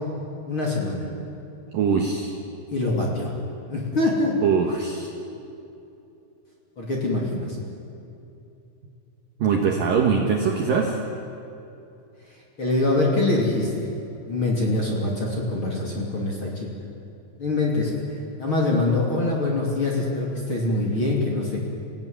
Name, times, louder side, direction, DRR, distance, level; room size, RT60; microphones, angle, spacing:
voice 1, 0.5-1.1 2.7-3.3 3.7-4.3 6.8-7.6 12.6-13.9 14.3-16.7 17.4-18.0 18.4-21.6, left 2 dB, 30° left, -2 dB, 2.9 m, -24 dB
voice 2, 1.7-2.4 4.4-5.1 9.4-11.0, right 6 dB, 65° right, 1 dB, 2.4 m, -22 dB
28.5 x 16.0 x 9.6 m, 2.8 s
omnidirectional pair, 5.7 m